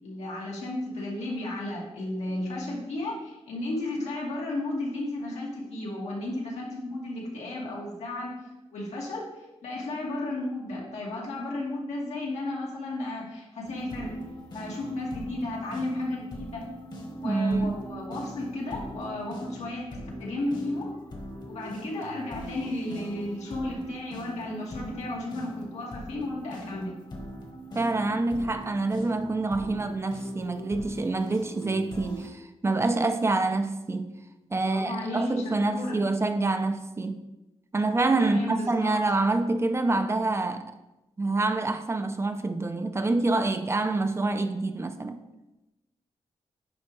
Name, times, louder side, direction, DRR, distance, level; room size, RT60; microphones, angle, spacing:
voice 1, 0.0-8.4 8.7-14.1 14.5-16.7 17.2-20.9 21.4-26.9 34.6-36.0 38.2-39.0, left 2 dB, 85° left, 2.1 m, -34 dB
sound 1, 13.6-32.3, equal, 40° left, 1.3 m, -41 dB
voice 2, 17.2-17.8 27.7-34.1 34.5-37.2 37.7-40.7 41.2-45.2, right 2 dB, 25° right, 0.5 m, -26 dB
9.6 x 5.1 x 3.2 m
wide cardioid pair, 125°, 11 cm